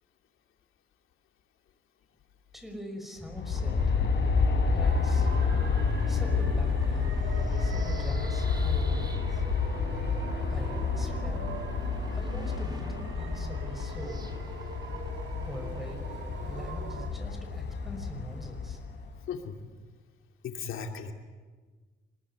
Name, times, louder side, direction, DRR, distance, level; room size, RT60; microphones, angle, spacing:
voice 1, 2.5-4.0 4.7-5.3 6.1-7.2 7.6-9.5 10.5-11.5 12.1-14.3 15.4-16.2 16.4-18.8, equal, ahead, 5 dB, 5.7 m, -43 dB
Aircraft, 3.2-19.3, left 5 dB, 60° left, 5.1 m, -29 dB
sound 1, 3.5-16.0, right 3 dB, 20° right, 3.4 m, -47 dB
sound 2, 4.8-17.1, right 6 dB, 85° right, 2.8 m, -44 dB
voice 2, 19.3-19.6 20.4-21.1, left 6 dB, 85° left, 3 dB, 2.8 m, -36 dB
25.5 x 21.5 x 9.8 m, 1.4 s
cardioid pair, 130°, 20 cm